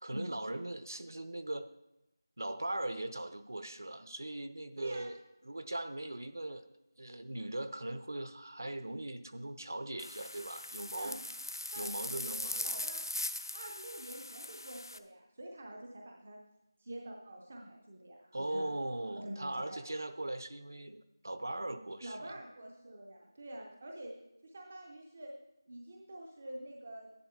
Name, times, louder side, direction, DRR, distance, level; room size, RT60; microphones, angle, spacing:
voice 1, 0.0-1.7 2.4-5.2 5.4-6.6 7.0-11.2 11.8-12.6 18.3-22.3, right 1 dB, 50° right, 10 dB, 0.7 m, -39 dB
voice 2, 4.8-5.1 10.9-11.1 11.7-11.9 12.2-13.1 13.5-16.4 16.8-18.7 19.1-19.8 22.0-24.1 24.4-25.3 25.7-27.1, right 1 dB, 15° right, 0 dB, 0.4 m, -46 dB
sound 1, 10.0-15.0, left 1 dB, 70° left, 0.6 m, -40 dB
11.5 x 10.5 x 3.6 m, 0.91 s
figure-of-eight pair, 180°, 2 cm